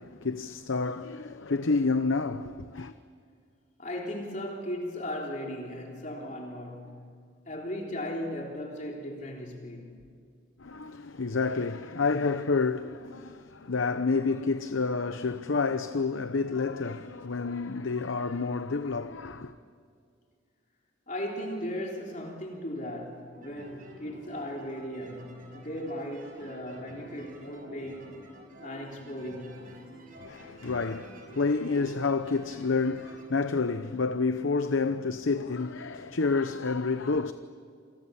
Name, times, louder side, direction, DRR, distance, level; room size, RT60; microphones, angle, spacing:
voice 1, 0.0-2.9 10.6-19.5 30.2-37.3, left 4 dB, 85° left, 0.8 m, -29 dB
voice 2, 3.8-7.1 7.5-10.0 21.1-28.2 28.6-29.7, left 1 dB, 40° left, 3.7 m, -37 dB
sound 1, 23.3-33.2, right 1 dB, 45° right, 5.8 m, -49 dB
29.5 x 28.0 x 7.1 m
head